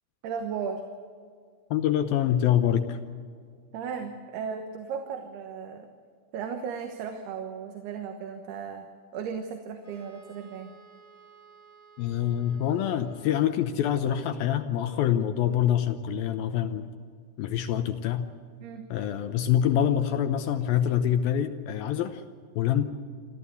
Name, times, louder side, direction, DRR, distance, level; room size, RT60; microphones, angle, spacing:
voice 1, 0.2-0.8 3.7-5.9 6.3-8.9 9.1-10.7 18.6-18.9, right 6 dB, 75° right, 4 dB, 3.3 m, -35 dB
voice 2, 1.7-3.0 12.0-16.9 17.4-18.3 18.9-22.2 22.6-22.8, left 10 dB, 75° left, 8 dB, 2.4 m, -25 dB
Wind instrument woodwind instrument, 9.8-13.9, right 5 dB, 55° left, 8.8 m, -54 dB
25.5 x 14.0 x 8.3 m, 2.1 s
omnidirectional pair, 4.7 m